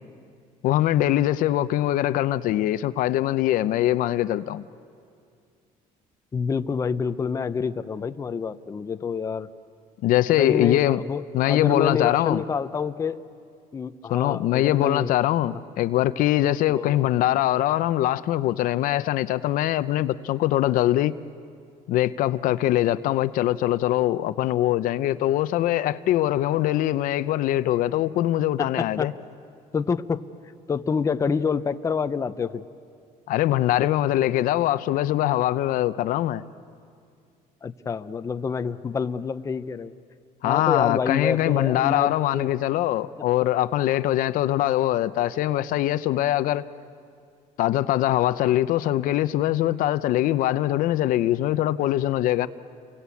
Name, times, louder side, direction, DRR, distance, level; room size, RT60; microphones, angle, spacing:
voice 1, 0.6-4.6 10.0-11.0 11.3-12.4 14.1-21.1 21.9-29.1 33.3-36.4 40.4-46.6 47.6-52.5, left 13 dB, 70° left, 0.7 m, -22 dB
voice 2, 6.3-9.5 10.4-13.2 13.7-15.2 16.7-17.1 28.6-29.1 29.7-30.2 30.7-32.6 37.6-39.9 40.4-42.5 43.4-43.5, left 5 dB, 20° left, 0.6 m, -27 dB
29.0 x 23.0 x 8.4 m
cardioid pair, 140°, 15 cm